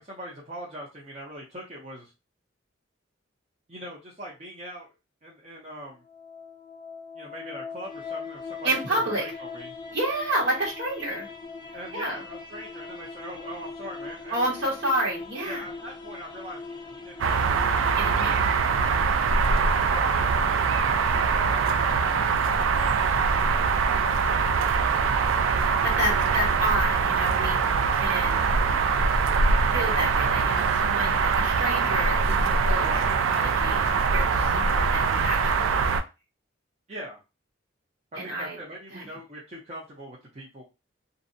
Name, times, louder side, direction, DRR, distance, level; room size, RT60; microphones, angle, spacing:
voice 1, 0.0-2.1 3.7-4.9 5.2-6.0 7.1-9.7 11.7-14.4 15.5-17.8 18.2-18.4 19.9-23.6 32.8-33.1 36.9-37.2 38.2-40.6, equal, 35° right, -5 dB, 0.6 m, -41 dB
sound 1, 5.9-18.9, left 4 dB, 25° left, 0.3 m, -41 dB
voice 2, 8.6-9.2 9.9-11.3 11.9-12.2 14.3-15.6 17.9-19.1 25.5-27.6 27.9-28.5 29.7-32.9 33.3-36.0 38.1-38.6 38.9-39.1, right 1 dB, 65° right, -4 dB, 1.4 m, -30 dB
sound 2, 17.2-36.0, right 5 dB, 85° right, 0.3 m, -23 dB
2.6 x 2.1 x 2.6 m, 0.27 s
head